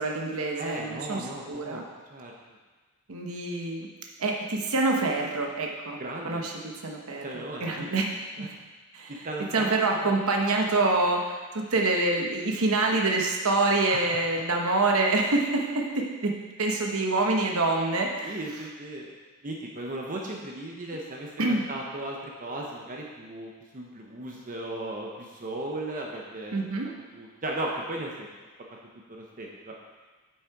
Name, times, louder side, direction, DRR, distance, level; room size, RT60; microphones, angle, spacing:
voice 1, 0.0-1.8 3.1-3.9 4.2-6.0 6.2-7.2 7.6-8.1 8.4-8.5 8.9-9.3 9.5-16.3 16.6-18.4 21.4-21.6 26.5-26.9, right 2 dB, 70° right, 1 dB, 1.0 m, -26 dB
voice 2, 0.6-1.8 2.1-2.3 6.0-6.4 7.2-7.9 8.4-8.5 9.1-10.2 13.9-14.2 18.2-19.1 19.4-26.6 27.1-28.5 29.1-29.7, right 1 dB, 40° right, -1 dB, 0.8 m, -36 dB
8.2 x 6.4 x 4.6 m, 1.3 s
head